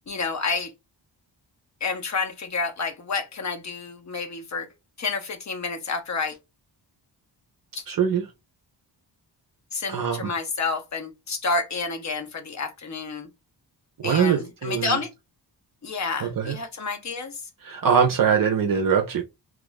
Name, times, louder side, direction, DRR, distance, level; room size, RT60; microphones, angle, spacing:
voice 1, 0.1-0.7 1.8-4.7 5.0-6.4 7.7-7.8 9.7-13.3 14.0-15.1 15.8-17.4, left 4 dB, 40° left, 0.9 m, -29 dB
voice 2, 7.9-8.3 9.9-10.3 14.0-15.0 16.2-16.6 17.6-19.2, right 7 dB, 50° right, 0.6 m, -22 dB
3.0 x 2.4 x 3.8 m
wide cardioid pair, 145°, 43 cm